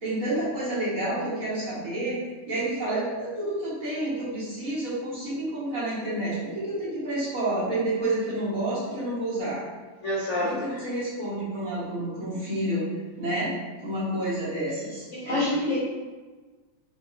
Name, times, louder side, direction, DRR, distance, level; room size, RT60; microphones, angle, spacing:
voice 1, 0.0-2.2 2.5-9.6 10.4-12.8 13.2-13.5 13.8-15.8, right 1 dB, 45° right, -10 dB, 1.6 m, -29 dB
voice 2, 10.0-10.8 15.1-15.8, left 1 dB, 60° left, -8 dB, 0.7 m, -27 dB
4.8 x 3.0 x 2.5 m, 1.3 s
omnidirectional pair, 2.3 m